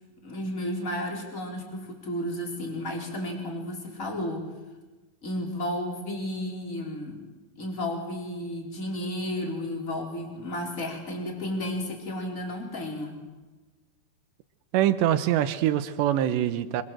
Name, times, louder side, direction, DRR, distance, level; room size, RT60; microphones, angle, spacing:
voice 1, 0.2-4.4 5.2-7.2 7.6-13.2, left 1 dB, 15° left, 1 dB, 4.6 m, -33 dB
voice 2, 14.7-16.8, right 12 dB, 75° right, 12 dB, 3.1 m, -24 dB
26.5 x 25.0 x 7.8 m, 1.2 s
omnidirectional pair, 5.2 m